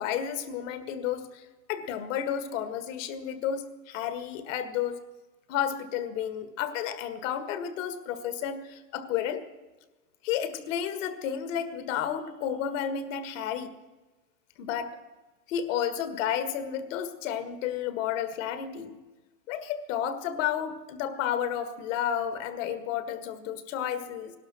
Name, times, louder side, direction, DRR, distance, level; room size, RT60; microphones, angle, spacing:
voice 1, 0.0-5.0 5.5-9.5 10.2-13.7 14.6-15.0 15.5-19.0 19.5-24.3, left 9 dB, 50° left, 11 dB, 1.7 m, -31 dB
17.5 x 12.0 x 6.1 m, 1.2 s
hypercardioid pair, 135°, 49 cm